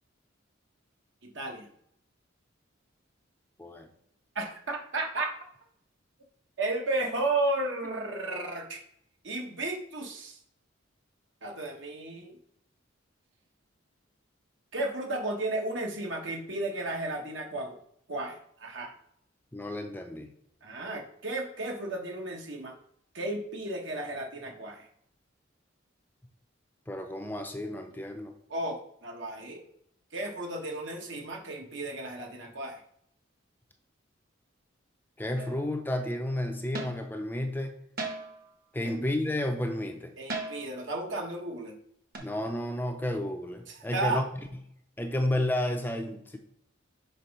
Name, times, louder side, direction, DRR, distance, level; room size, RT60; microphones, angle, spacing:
voice 1, 1.2-1.7 4.3-5.3 6.6-8.8 9.2-10.4 11.4-12.4 14.7-17.7 18.1-18.9 20.6-22.7 23.1-24.9 28.5-29.6 30.1-32.8 38.8-39.1 40.2-41.7 43.7-44.2, right 2 dB, 70° right, 2 dB, 1.3 m, -33 dB
voice 2, 19.5-20.3 26.9-28.3 35.2-37.8 38.7-40.1 42.2-44.2 45.0-46.4, left 1 dB, 10° left, 4 dB, 0.5 m, -31 dB
sound 1, 35.4-35.7 36.7-37.1 38.0-38.5 40.3-40.8 42.1-42.2, right 3 dB, 50° right, 1.2 m, -37 dB
6.0 x 3.5 x 5.3 m, 0.70 s
head